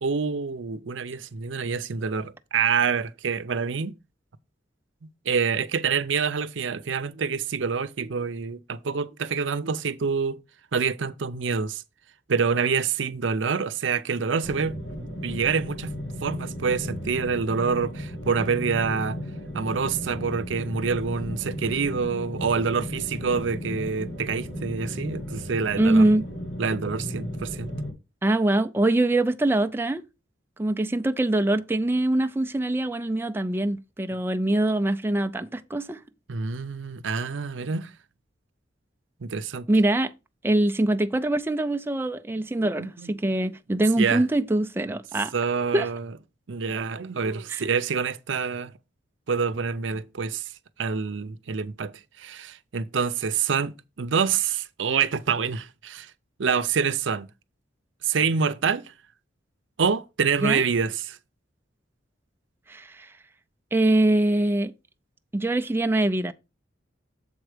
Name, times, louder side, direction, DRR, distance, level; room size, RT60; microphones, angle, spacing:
voice 1, 0.0-4.0 5.3-10.4 10.7-11.8 12.3-15.9 16.2-19.2 19.5-26.1 26.6-27.7 30.9-31.0 36.3-37.9 39.2-39.7 42.6-43.1 44.0-44.2 45.3-46.1 46.5-48.7 49.3-50.5 50.8-56.1 56.4-57.3 58.0-58.8 59.8-61.2, right 5 dB, 90° right, 0.6 m, -27 dB
sound 1, 14.4-27.9, equal, 75° left, 2.5 m, -35 dB
voice 2, 25.8-26.3 28.2-30.0 30.6-36.0 39.7-40.1 40.4-45.3 45.7-45.9 47.5-47.6 60.4-60.6 62.7-63.1 63.7-64.7 65.3-66.3, right 1 dB, 10° right, 0.4 m, -23 dB
7.1 x 4.6 x 4.9 m
head